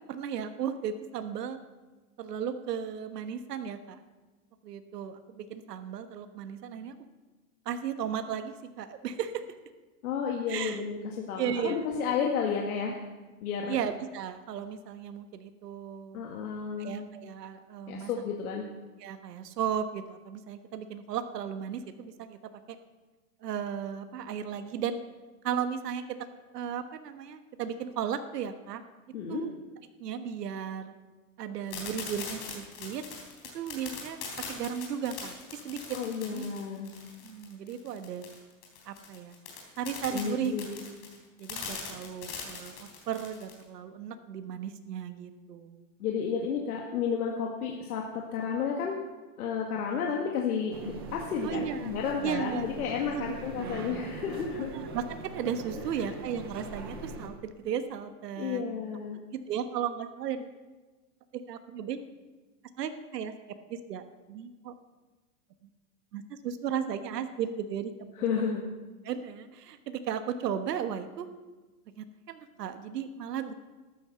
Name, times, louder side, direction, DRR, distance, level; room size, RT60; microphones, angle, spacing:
voice 1, 0.1-1.6 2.2-4.0 4.6-6.9 7.6-9.4 10.5-10.8 11.4-11.8 13.7-16.2 16.8-18.1 19.0-22.4 22.7-22.8 23.4-25.0 25.4-26.2 26.5-28.8 29.3-29.5 30.0-30.9 31.4-33.0 33.5-34.2 34.5-36.5 37.2-38.3 38.8-39.4 39.8-40.5 41.4-45.8 51.4-51.8 52.2-52.8 53.1-53.3 53.6-53.7 54.7-58.6 59.3-60.5 61.3-62.0 62.8-63.3 63.7-64.7 66.1-68.1 69.0-71.3 72.0-73.5, right 8 dB, 90° right, 9 dB, 1.4 m, -35 dB
voice 2, 10.0-13.0 13.4-13.8 16.1-17.0 17.9-18.7 29.1-29.4 35.9-36.9 40.1-40.8 46.0-49.0 49.4-54.7 55.8-56.1 58.4-59.2 68.2-68.6, left 6 dB, 70° left, 0 dB, 2.0 m, -32 dB
sound 1, 31.7-43.6, left 6 dB, 40° left, 3.7 m, -41 dB
sound 2, 50.7-57.3, right 3 dB, 15° right, 0.4 m, -41 dB
13.5 x 10.5 x 6.9 m, 1.2 s
supercardioid pair, 170°, 46 cm